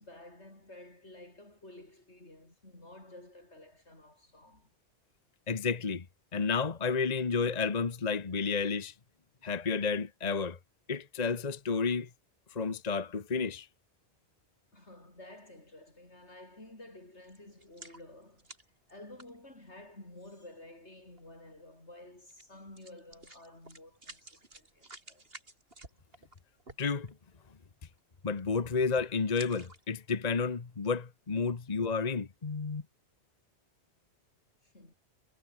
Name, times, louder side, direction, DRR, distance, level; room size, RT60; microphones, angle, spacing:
voice 1, 0.0-4.7 14.7-18.5 18.9-25.3 34.6-34.9, left 1 dB, 85° left, 7.0 m, -52 dB
voice 2, 5.5-6.0 6.3-8.9 9.4-10.6 10.9-12.1 12.5-13.7 26.8-27.1 28.2-32.8, left 5 dB, 40° left, 1.2 m, -31 dB
sound 1, 17.2-19.9 20.7-20.8 21.2-21.3 22.3-22.5 22.8-27.3 27.8-28.0 28.3-28.6 29.2-30.1 30.6-30.7, right 2 dB, 60° right, 4.7 m, -53 dB
omnidirectional pair, 1.1 m